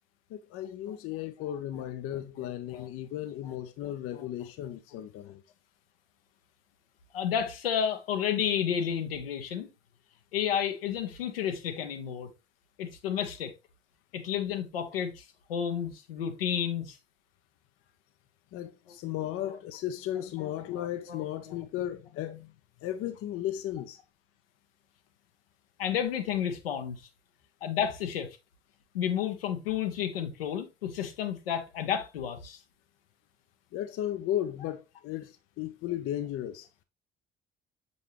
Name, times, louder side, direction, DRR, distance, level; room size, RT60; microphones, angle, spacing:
voice 1, 0.3-5.4 18.5-22.5 22.8-24.0 33.7-36.8, left 12 dB, 50° left, 0.7 m, -35 dB
voice 2, 1.4-1.8 2.4-2.9 3.4-3.6 4.1-4.2 4.9-5.0 7.1-9.7 10.3-12.3 12.8-13.5 14.1-15.2 15.5-17.0 19.3-19.6 20.4-21.6 25.8-27.0 27.6-28.4 28.9-32.6, left 9 dB, 75° left, 0.9 m, -32 dB
6.6 x 5.4 x 2.9 m
figure-of-eight pair, 50°, 29 cm